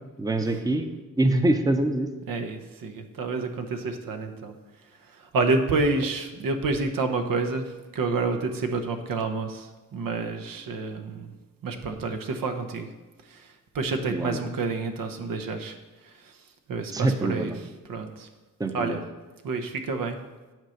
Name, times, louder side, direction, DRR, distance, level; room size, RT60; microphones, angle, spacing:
voice 1, 0.2-0.9 1.2-2.1 14.1-14.4 16.9-17.6 18.6-19.0, right 2 dB, 10° right, 7 dB, 0.7 m, -24 dB
voice 2, 2.3-4.5 5.0-7.6 7.9-11.3 11.6-12.9 13.2-15.8 16.0-16.4 16.7-17.5 17.9-18.3 18.7-19.0 19.4-20.2, right 3 dB, 80° right, 6 dB, 1.0 m, -29 dB
9.2 x 4.5 x 6.5 m, 1.2 s
cardioid pair, 95°, 34 cm